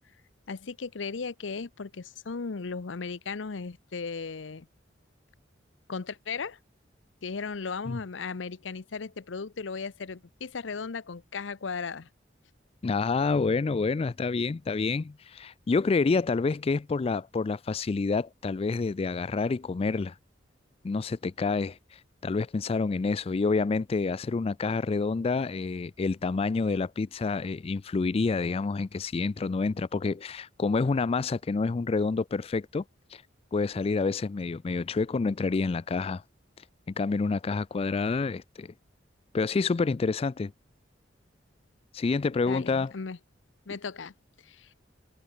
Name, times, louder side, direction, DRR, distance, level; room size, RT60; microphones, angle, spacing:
voice 1, 0.5-4.7 5.9-6.6 7.2-12.1 42.5-43.2 43.7-44.1 44.4-44.7, left 5 dB, 80° left, 0.7 m, -36 dB
voice 2, 12.8-20.2 20.8-32.8 33.1-33.2 33.5-36.2 36.6-38.7 39.3-40.5 41.9-42.9, left 4 dB, 30° left, 0.4 m, -28 dB
head